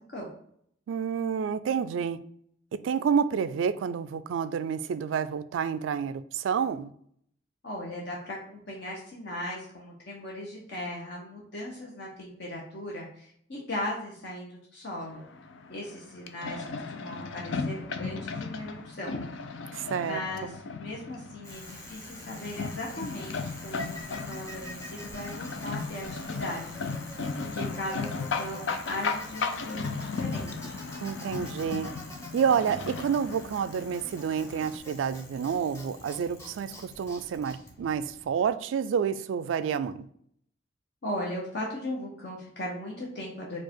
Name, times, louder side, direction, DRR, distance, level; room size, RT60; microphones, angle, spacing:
voice 1, 0.9-2.2 2.8-6.9 19.7-20.6 31.0-31.9 32.3-40.1, right 7 dB, 90° right, 0.3 m, -29 dB
voice 2, 7.6-15.2 15.7-19.2 20.0-20.5 20.8-26.8 27.4-30.7 41.0-43.6, left 1 dB, 60° left, 0.9 m, -38 dB
sound 1, 14.9-34.8, left 4 dB, 80° left, 0.5 m, -36 dB
Bicycle, 21.4-38.5, left 1 dB, 15° left, 1.0 m, -46 dB
4.6 x 2.4 x 4.4 m
head